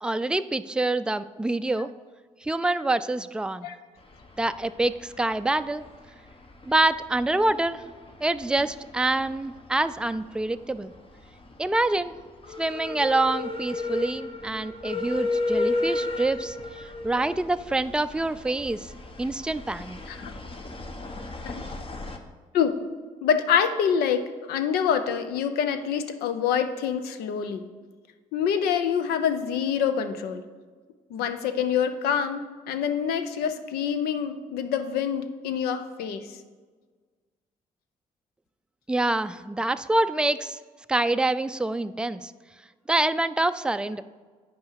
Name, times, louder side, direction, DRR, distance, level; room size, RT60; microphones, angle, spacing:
voice 1, 0.0-1.9 2.4-3.7 4.4-5.8 6.7-7.8 8.2-10.9 11.6-12.2 12.6-18.9 19.2-20.0 38.9-40.6 40.9-42.3 42.9-44.0, right 2 dB, 5° right, 11 dB, 0.4 m, -26 dB
sound 1, 4.0-22.2, left 2 dB, 35° left, 1.1 m, -35 dB
voice 2, 23.2-24.2 24.5-27.6 28.3-30.4 31.1-36.3, left 7 dB, 80° left, 9 dB, 0.6 m, -26 dB
9.1 x 5.5 x 4.7 m, 1.5 s
supercardioid pair, 55°, 16 cm